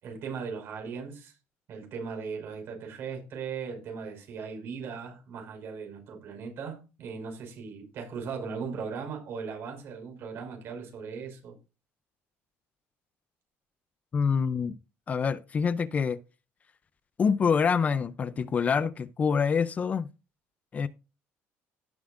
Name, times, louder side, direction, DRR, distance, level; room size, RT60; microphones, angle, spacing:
voice 1, 0.0-1.4 1.7-11.5, right 5 dB, 55° right, 5.4 m, -38 dB
voice 2, 14.1-14.7 15.1-16.2 17.2-20.1 20.7-20.9, left 6 dB, 30° left, 0.5 m, -26 dB
17.0 x 7.1 x 2.5 m
cardioid pair, 145°, 5 cm